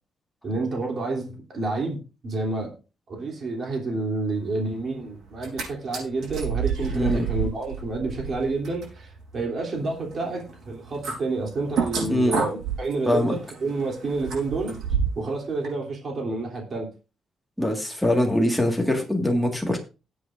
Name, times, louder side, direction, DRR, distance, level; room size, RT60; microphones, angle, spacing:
voice 1, 0.4-2.7 3.1-14.8 15.1-16.9, right 3 dB, 40° right, 0 dB, 3.1 m, -29 dB
sound 1, 5.3-5.6 5.9-15.3 15.6-15.7, right 6 dB, 75° right, 5.4 m, -30 dB
voice 2, 17.6-19.8, left 1 dB, ahead, 1 dB, 1.8 m, -23 dB
19.5 x 8.0 x 2.6 m, 0.32 s
wide cardioid pair, 165°, 0 cm